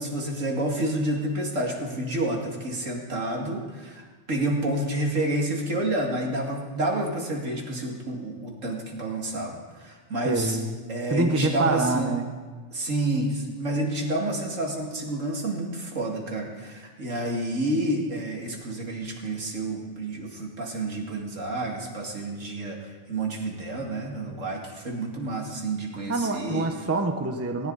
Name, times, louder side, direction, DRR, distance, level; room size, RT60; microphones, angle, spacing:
voice 1, 0.0-4.0 4.3-10.6 10.9-12.1 12.7-26.7, right 1 dB, 70° right, 0 dB, 2.7 m, -29 dB
voice 2, 10.2-10.8 11.1-12.2 26.1-27.7, right 2 dB, 15° right, 5 dB, 0.9 m, -26 dB
18.5 x 17.5 x 4.1 m, 1.4 s
omnidirectional pair, 1.4 m